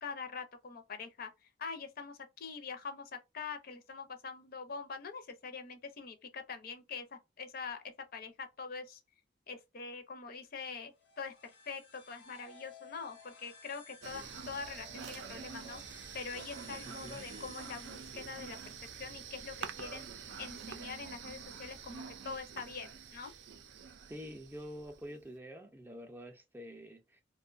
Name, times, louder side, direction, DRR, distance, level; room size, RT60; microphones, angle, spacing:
voice 1, 0.0-7.8 8.1-9.0 9.5-20.1 20.4-23.3, left 5 dB, 55° left, 0.6 m, -44 dB
sound 1, 10.9-18.6, left 3 dB, 90° left, 1.1 m, -56 dB
sound 2, 14.0-25.2, right 6 dB, 70° right, 0.4 m, -47 dB
voice 2, 16.8-17.2 24.1-27.2, equal, 10° right, 0.4 m, -47 dB
2.5 x 2.2 x 2.4 m
head